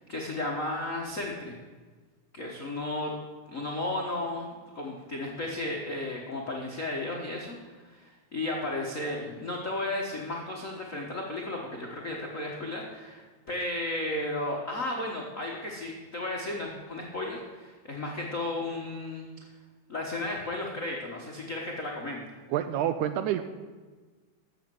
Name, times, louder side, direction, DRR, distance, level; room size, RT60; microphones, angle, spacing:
voice 1, 0.0-1.5 2.3-3.1 3.5-19.3 19.9-22.2, left 2 dB, 60° left, -2 dB, 0.8 m, -34 dB
voice 2, 22.5-23.5, right 11 dB, 80° right, 10 dB, 1.8 m, -28 dB
13.0 x 7.2 x 7.7 m, 1.4 s
omnidirectional pair, 3.8 m